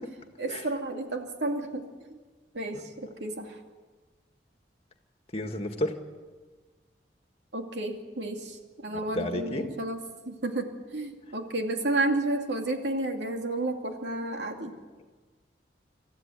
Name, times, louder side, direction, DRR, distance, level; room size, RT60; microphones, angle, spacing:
voice 1, 0.4-2.2 2.5-3.6 7.5-10.0 10.3-14.7, right 2 dB, 85° right, 3 dB, 2.6 m, -31 dB
voice 2, 5.3-5.9 9.1-9.7, left 1 dB, 35° left, 5 dB, 2.0 m, -30 dB
26.0 x 14.5 x 9.4 m, 1.4 s
head